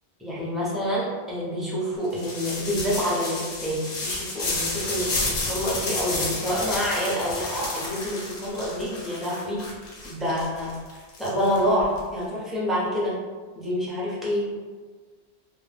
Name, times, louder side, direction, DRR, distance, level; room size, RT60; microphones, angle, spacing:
voice 1, 0.2-9.6 10.0-10.7 11.2-13.2 13.6-14.5, equal, ahead, -7 dB, 0.4 m, -27 dB
sound 1, 2.1-12.0, left 2 dB, 50° left, 0.6 m, -31 dB
2.2 x 2.1 x 3.2 m, 1.4 s
omnidirectional pair, 1.1 m